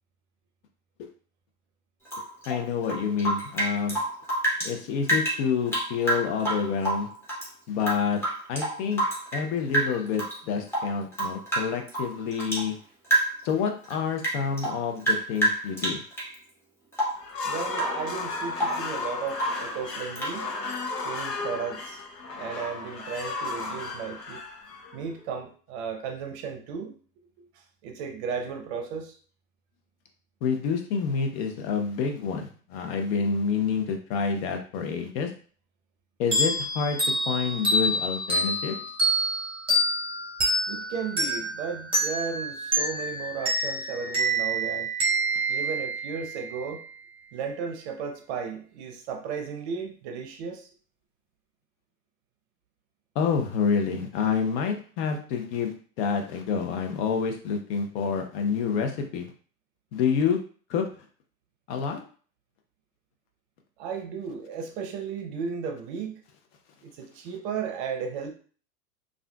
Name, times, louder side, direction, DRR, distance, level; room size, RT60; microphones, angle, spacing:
Rain / Drip, 2.1-4.7 5.0-7.5 7.8-9.5 9.7-10.4 10.7-12.7 13.0-13.5 13.8-16.3 16.9-17.3 17.7-18.0 18.3-18.9 19.3-19.7 20.2-20.4, right 1 dB, 5° left, 0.9 m, -28 dB
voice 1, 2.5-4.0 4.6-7.1 7.7-8.2 8.5-9.0 9.3-12.8 13.4-16.0 30.4-35.3 36.2-37.0 37.3-38.8 53.1-59.3 59.9-60.4 60.7-60.8 61.7-62.0, left 6 dB, 50° left, 4 dB, 0.7 m, -28 dB
sound 1, 17.2-25.3, left 3 dB, 90° left, 0.8 m, -34 dB
voice 2, 17.4-20.5 21.0-22.0 22.4-24.4 24.9-27.0 27.4-27.5 27.8-29.1 40.7-44.9 45.5-46.8 47.3-50.7 63.8-66.2 66.8-68.3, right 6 dB, 45° right, 5 dB, 0.7 m, -35 dB
sound 2, 36.3-46.6, right 1 dB, 10° right, 1.2 m, -27 dB
3.4 x 2.5 x 2.2 m, 0.42 s
hypercardioid pair, 105°, 47 cm